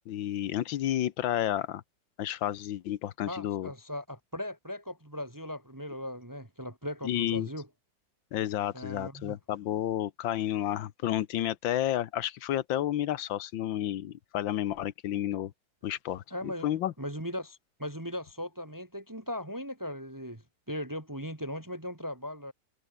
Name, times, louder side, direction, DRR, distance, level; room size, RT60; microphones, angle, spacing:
voice 1, 0.1-1.8 2.2-3.7 7.0-7.5 8.3-15.5 15.8-16.9, left 12 dB, 90° left, 1.7 m, -31 dB
voice 2, 3.3-7.7 8.7-9.3 16.3-16.7 17.0-20.4 20.7-22.5, equal, 10° right, 2.0 m, -38 dB
omnidirectional pair, 2.0 m